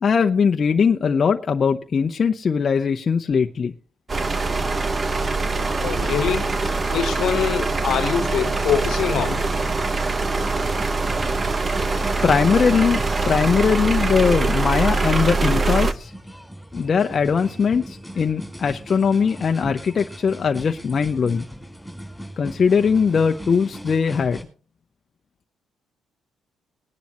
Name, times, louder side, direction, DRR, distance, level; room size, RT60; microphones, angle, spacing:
voice 1, 0.0-3.7 12.2-16.1 16.7-21.5 22.4-24.4, left 6 dB, 45° left, 0.7 m, -20 dB
sound 1, 4.1-15.9, right 3 dB, 30° right, 1.0 m, -23 dB
voice 2, 5.6-6.6 6.9-9.5, left 8 dB, 70° left, 1.2 m, -24 dB
sound 2, 7.9-24.4, equal, ahead, 4.3 m, -39 dB
20.5 x 10.5 x 3.0 m
cardioid pair, 80°, 0 cm